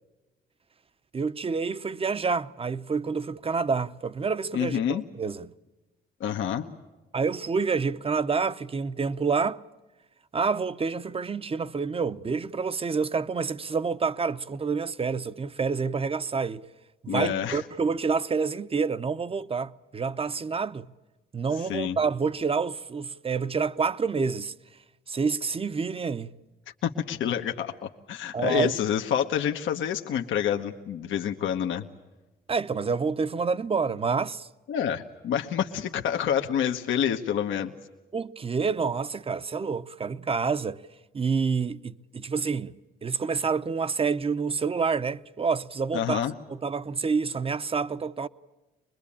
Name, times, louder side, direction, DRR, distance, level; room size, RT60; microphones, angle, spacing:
voice 1, 1.1-5.5 7.1-9.6 10.3-16.6 17.0-20.9 21.3-24.5 25.1-26.3 28.3-28.7 32.5-34.5 38.1-40.8 41.1-42.8 43.0-46.2 46.5-48.3, right 5 dB, 30° right, 0.8 m, -28 dB
voice 2, 4.5-5.0 6.2-6.7 17.1-17.6 21.7-22.0 26.8-31.8 34.7-37.7 45.9-46.3, left 9 dB, 75° left, 1.2 m, -28 dB
24.0 x 21.5 x 8.6 m
cardioid pair, 90°, 20 cm